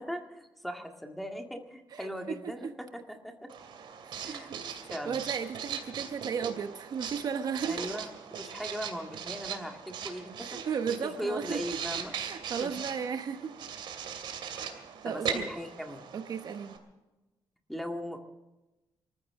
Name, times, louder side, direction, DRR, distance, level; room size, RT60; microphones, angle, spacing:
voice 1, 0.0-3.5 4.2-4.5 4.9-5.2 7.7-8.1 8.4-10.6 11.0-12.1 12.6-12.7 15.0-16.1 17.7-18.2, equal, ahead, 3 dB, 1.9 m, -38 dB
voice 2, 1.9-2.7 4.1-4.4 4.8-8.0 10.4-11.6 12.1-13.5 15.0-15.5 16.1-16.7, right 6 dB, 55° right, 8 dB, 1.1 m, -35 dB
Writing, 3.5-16.8, right 7 dB, 80° right, 2.5 m, -39 dB
25.5 x 14.5 x 3.7 m, 1.0 s
cardioid pair, 140°, 8 cm